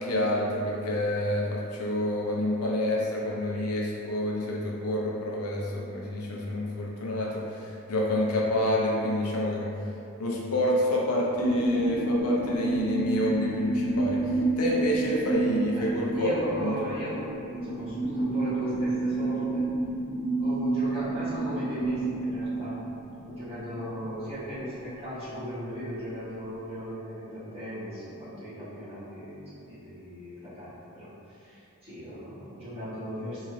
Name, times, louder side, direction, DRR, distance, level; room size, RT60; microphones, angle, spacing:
voice 1, 0.0-9.7 10.2-16.3 16.6-16.8, left 1 dB, 75° left, -3 dB, 0.6 m, -28 dB
sound 1, 11.3-24.4 24.8-24.9, right 2 dB, 35° left, 0.8 m, -29 dB
voice 2, 15.6-19.6 20.4-22.8 23.2-33.4, equal, 25° right, -13 dB, 1.4 m, -37 dB
3.9 x 3.0 x 2.5 m, 2.6 s
head